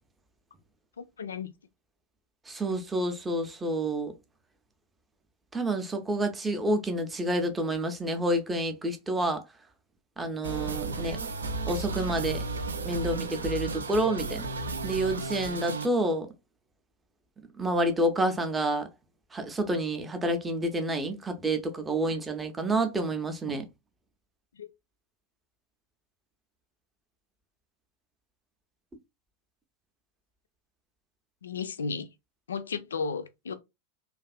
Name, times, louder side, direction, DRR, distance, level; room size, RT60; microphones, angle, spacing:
voice 1, 1.0-1.5 22.1-22.2 24.6-24.7 31.4-32.1 32.5-33.5, left 5 dB, 70° left, 0.3 m, -34 dB
voice 2, 2.5-4.1 5.5-9.4 10.2-11.2 11.7-12.4 12.8-14.5 14.8-16.3 17.6-18.9 19.3-23.6, right 1 dB, 15° right, 0.5 m, -28 dB
sound 1, 10.4-15.9, right 3 dB, 70° right, 0.3 m, -34 dB
2.5 x 2.3 x 2.2 m
figure-of-eight pair, 90°, 0 cm